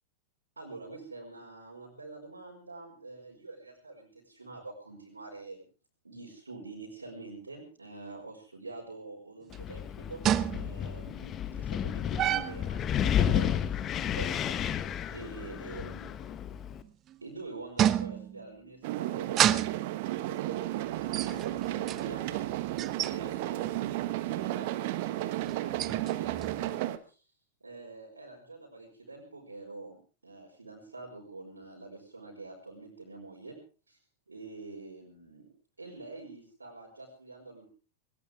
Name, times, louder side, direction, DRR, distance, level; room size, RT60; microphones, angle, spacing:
voice 1, 0.6-5.6 6.0-10.2 10.5-16.3 17.2-19.6 20.2-22.7 23.0-26.8 27.1-27.2 27.6-30.0 30.2-33.6 33.9-34.0 34.3-35.5 35.8-37.7, right 3 dB, 85° right, -4 dB, 5.0 m, -46 dB
Wind, 9.5-16.8, left 9 dB, 30° left, 1.2 m, -32 dB
sound 1, 9.5-9.6 10.2-10.9 12.2-12.7 16.8-17.2 17.8-18.5 19.2-20.0 21.0-23.2 23.6-23.9 25.4-26.7, right 11 dB, 30° right, 0.8 m, -30 dB
sound 2, 18.8-27.0, right 15 dB, 50° right, 1.2 m, -33 dB
19.0 x 19.0 x 3.6 m, 0.36 s
figure-of-eight pair, 95°, 0 cm